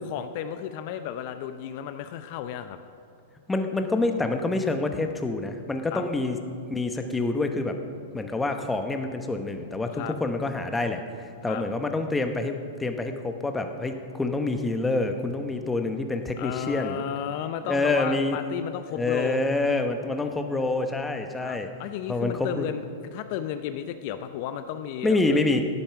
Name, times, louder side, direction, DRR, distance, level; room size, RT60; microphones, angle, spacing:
voice 1, 0.1-2.8 5.9-6.0 9.9-10.2 11.5-11.6 16.4-19.4 21.4-25.4, left 10 dB, 50° left, 9 dB, 0.6 m, -33 dB
voice 2, 3.5-6.4 6.7-7.8 8.1-11.0 11.4-12.5 12.8-17.0 17.7-18.4 18.9-21.7 22.1-22.7 25.0-25.6, left 2 dB, 10° left, 6 dB, 0.9 m, -27 dB
12.0 x 8.8 x 5.9 m, 2.2 s
hypercardioid pair, 125°, 0 cm